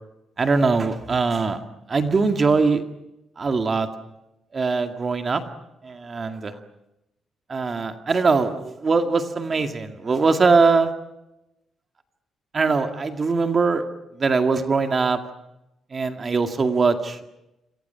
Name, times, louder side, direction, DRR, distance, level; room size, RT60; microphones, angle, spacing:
voice 1, 0.4-1.6 1.9-2.8 3.4-3.9 4.5-5.4 5.8-6.5 7.5-10.9 12.5-13.8 14.2-15.2 15.9-17.3, right 4 dB, 30° right, 6 dB, 2.1 m, -21 dB
28.0 x 25.0 x 5.8 m, 0.90 s
cardioid pair, 140°, 0 cm